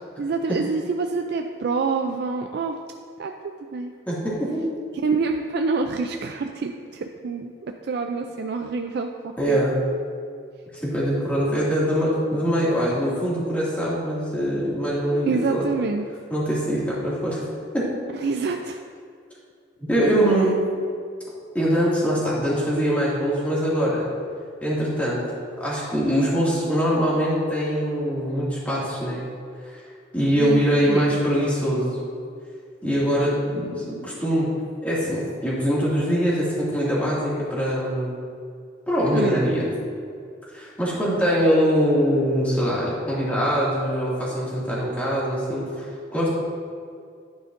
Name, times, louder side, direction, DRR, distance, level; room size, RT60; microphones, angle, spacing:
voice 1, 0.2-2.8 3.2-3.3 3.7-3.9 5.0-9.6 15.3-16.1 18.1-18.8 20.3-20.4 30.4-30.6 30.9-31.2 39.1-39.4, right 4 dB, 60° right, 4 dB, 0.4 m, -26 dB
voice 2, 4.1-4.6 9.4-9.7 10.8-15.6 16.3-17.4 17.7-17.9 19.9-20.5 21.5-24.0 24.6-25.2 25.6-29.2 30.1-31.9 32.8-34.5 34.8-38.1 38.9-39.6 40.5-45.9 46.1-46.4, equal, 10° left, -8 dB, 2.1 m, -23 dB
10.5 x 8.6 x 2.6 m, 2.3 s
head